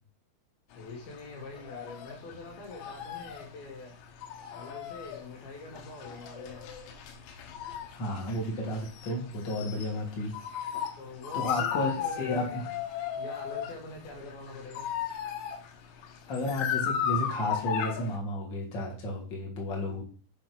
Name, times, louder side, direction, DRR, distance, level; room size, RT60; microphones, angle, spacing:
sound 1, 0.7-18.2, left 8 dB, 80° left, 3.4 m, -36 dB
voice 1, 0.8-4.0 4.5-6.7 10.9-12.7 13.2-14.9, left 3 dB, 60° left, 0 dB, 3.7 m, -44 dB
voice 2, 7.9-10.8 11.3-12.6 16.3-20.0, left 1 dB, 30° left, -3 dB, 2.7 m, -33 dB
7.7 x 5.0 x 6.3 m, 0.40 s
omnidirectional pair, 5.2 m